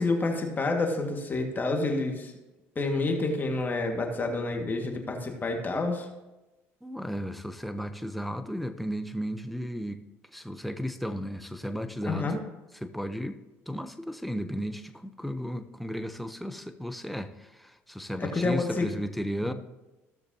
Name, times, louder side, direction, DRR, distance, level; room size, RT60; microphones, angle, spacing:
voice 1, 0.0-2.3 2.8-6.1 12.0-12.4 18.2-18.9 19.4-19.5, left 3 dB, 30° left, 2.0 m, -28 dB
voice 2, 6.8-10.0 10.3-12.4 12.8-19.5, equal, ahead, 0.8 m, -34 dB
15.5 x 6.6 x 2.9 m
hypercardioid pair, 70°, 7 cm